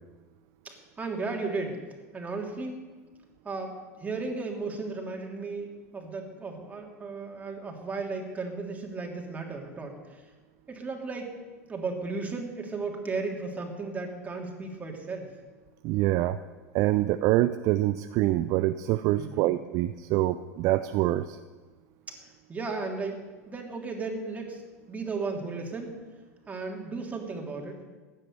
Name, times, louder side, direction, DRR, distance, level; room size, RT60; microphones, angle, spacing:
voice 1, 0.6-1.8 2.1-2.8 3.4-10.2 10.7-11.4 11.7-15.3 19.2-19.5 22.1-23.2 23.5-26.0 26.5-27.8, right 3 dB, 15° right, 1 dB, 3.1 m, -35 dB
voice 2, 15.8-16.4 16.7-21.4, right 15 dB, 45° right, 12 dB, 0.5 m, -25 dB
15.5 x 10.5 x 6.8 m, 1.3 s
figure-of-eight pair, 85°, 9 cm